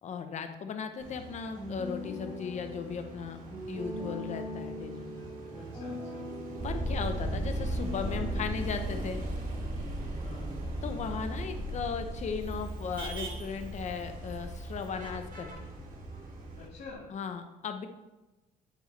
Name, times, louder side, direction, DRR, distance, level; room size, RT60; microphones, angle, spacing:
voice 1, 0.0-3.4 3.7-5.1 6.6-9.2 10.8-15.7 17.1-17.9, left 6 dB, 45° left, 7 dB, 0.8 m, -37 dB
Motor vehicle (road), 1.0-16.7, right 3 dB, 50° right, 2.5 m, -45 dB
sound 1, 1.5-8.5, left 1 dB, 10° left, 2.9 m, -41 dB
voice 2, 5.5-6.3 10.1-10.5 16.6-17.1, left 4 dB, 75° left, -5 dB, 2.0 m, -48 dB
sound 2, 6.6-16.9, right 1 dB, 20° right, 1.3 m, -36 dB
8.4 x 7.7 x 3.3 m, 1.1 s
cardioid pair, 110°, 17 cm